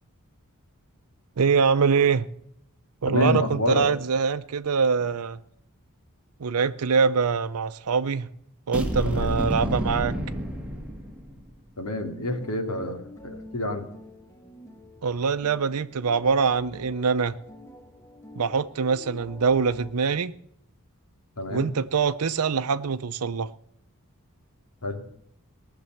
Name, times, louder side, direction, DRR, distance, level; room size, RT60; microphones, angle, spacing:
voice 1, 1.4-2.3 3.0-5.4 6.4-8.3 8.7-10.2 15.0-17.4 18.4-20.3 21.5-23.5, right 5 dB, 90° right, 0.6 m, -24 dB
voice 2, 3.1-3.9 9.0-9.4 11.8-13.9 21.4-21.7 24.8-25.1, left 2 dB, 85° left, 2.6 m, -28 dB
sound 1, 8.7-11.5, equal, 5° right, 1.8 m, -29 dB
sound 2, 12.2-19.9, left 1 dB, 10° left, 1.3 m, -48 dB
19.0 x 6.9 x 7.5 m
head